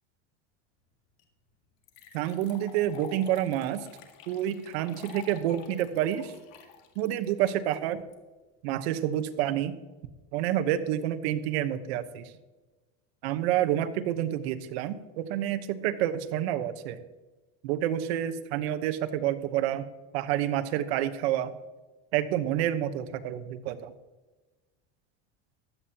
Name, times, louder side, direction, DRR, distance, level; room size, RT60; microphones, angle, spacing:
sound 1, 1.2-1.3 1.8-8.1, left 7 dB, 70° left, 2.0 m, -49 dB
voice 1, 2.1-3.9 4.3-6.3 7.0-8.0 8.6-9.8 10.3-12.3 13.2-17.0 17.6-19.9 20.1-21.5 22.1-23.9, right 11 dB, 80° right, 10 dB, 1.1 m, -28 dB
15.0 x 11.5 x 2.9 m, 1.2 s
supercardioid pair, 150°, 32 cm